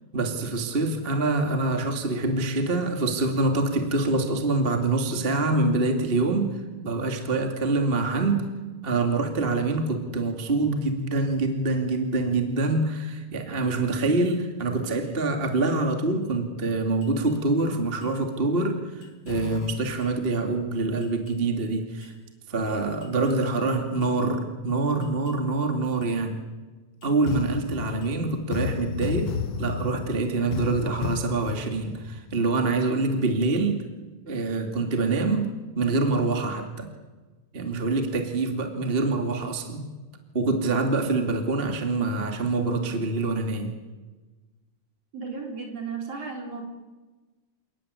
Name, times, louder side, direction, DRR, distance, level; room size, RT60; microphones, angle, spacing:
voice 1, 0.1-8.5 8.8-22.1 22.5-26.4 27.0-33.8 34.3-35.5 35.7-36.9 37.5-39.9 40.3-43.7, right 3 dB, 20° right, 4 dB, 2.4 m, -25 dB
sound 1, 17.0-17.3 18.0-18.1 19.0-20.3 21.0-21.3 22.0-22.1 23.0-23.3 24.0-24.1 25.0-25.3 26.0-26.1 27.0-32.8, left 7 dB, 55° left, 2.2 m, -34 dB
voice 2, 45.1-46.6, right 5 dB, 50° right, 2 dB, 4.7 m, -34 dB
29.5 x 18.5 x 9.8 m, 1.3 s
omnidirectional pair, 3.7 m